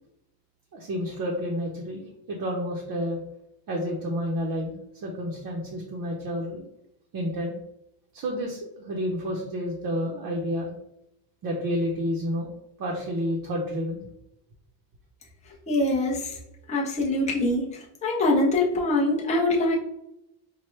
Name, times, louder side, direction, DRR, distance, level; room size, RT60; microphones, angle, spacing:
voice 1, 0.7-3.2 3.7-4.7 5.0-6.6 7.1-7.6 8.1-10.7 11.4-12.5 12.8-14.0, equal, 45° right, -1 dB, 0.7 m, -30 dB
voice 2, 15.7-16.3 16.7-19.8, left 2 dB, 15° left, -3 dB, 0.5 m, -24 dB
4.4 x 2.1 x 3.1 m, 0.81 s
cardioid pair, 165°, 49 cm